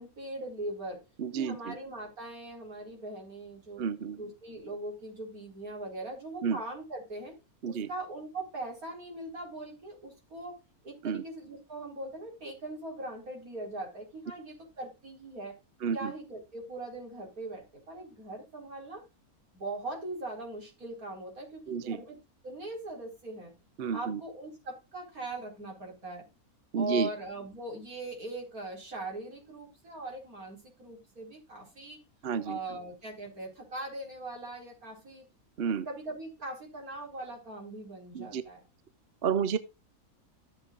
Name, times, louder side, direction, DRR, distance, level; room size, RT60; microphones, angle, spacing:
voice 1, 0.0-1.0 1.3-3.8 4.2-7.3 7.6-10.6 10.8-15.6 15.9-19.0 19.5-22.2 22.4-23.5 23.9-26.3 26.7-32.0 32.4-35.2 35.9-38.6, right 2 dB, 75° right, 5.0 m, -40 dB
voice 2, 1.2-1.8 3.8-4.2 6.4-6.6 7.6-7.9 11.0-11.2 15.8-16.1 21.7-22.0 23.8-24.2 26.7-27.1 32.2-32.8 35.6-35.9 38.1-38.4 39.2-39.6, right 6 dB, 50° right, 0.9 m, -31 dB
14.0 x 7.7 x 2.4 m
omnidirectional pair, 1.5 m